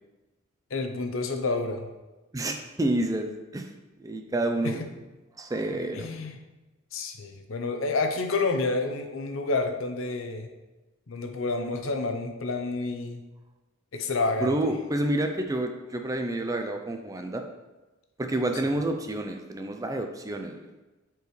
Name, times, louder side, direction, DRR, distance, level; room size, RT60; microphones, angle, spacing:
voice 1, 0.7-1.9 4.6-4.7 5.9-6.4 6.9-10.5 11.1-13.2 13.9-14.5 18.6-18.7, left 3 dB, 70° left, 5 dB, 0.7 m, -29 dB
voice 2, 2.3-3.7 4.0-4.8 5.4-6.1 14.4-17.4 18.2-20.6, right 1 dB, 15° right, 5 dB, 0.4 m, -29 dB
8.1 x 4.6 x 3.2 m, 1.1 s
head